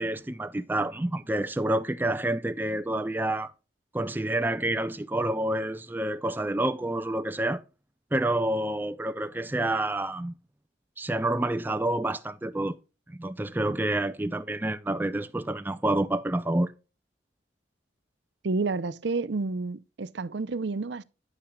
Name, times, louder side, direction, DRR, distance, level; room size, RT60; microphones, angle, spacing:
voice 1, 0.0-3.5 3.9-7.6 8.1-10.3 11.0-12.8 13.1-16.7, right 1 dB, 10° right, 0.4 m, -28 dB
voice 2, 18.4-21.0, right 3 dB, 70° right, 0.5 m, -30 dB
9.9 x 8.8 x 2.3 m
head